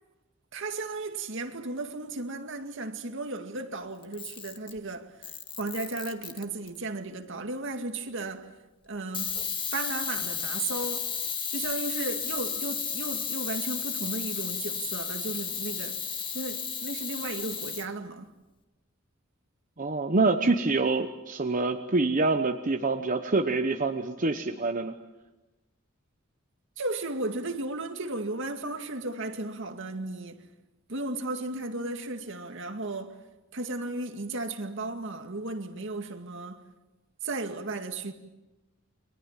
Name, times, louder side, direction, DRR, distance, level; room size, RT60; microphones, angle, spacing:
voice 1, 0.5-5.3 5.6-8.6 8.8-9.4 9.7-11.1 11.5-16.0 16.3-18.3 26.8-30.4 30.9-33.2 33.5-36.7 37.2-38.1, right 2 dB, 65° right, 2.1 m, -35 dB
Camera, 4.0-4.8 5.2-6.8 9.1-17.9, left 6 dB, 25° left, 1.9 m, -33 dB
voice 2, 19.8-24.9, right 3 dB, 40° right, 1.1 m, -26 dB
30.0 x 23.0 x 7.4 m
head